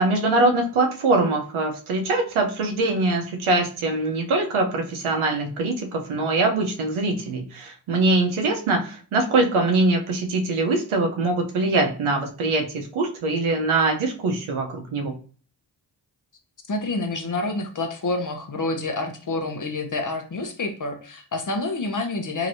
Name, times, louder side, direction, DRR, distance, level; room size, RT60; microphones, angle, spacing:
voice 1, 0.0-15.1, right 2 dB, 90° right, 3 dB, 0.8 m, -23 dB
voice 2, 16.7-22.5, left 2 dB, 40° left, 5 dB, 0.8 m, -28 dB
3.1 x 2.9 x 2.6 m, 0.39 s
cardioid pair, 45°, 48 cm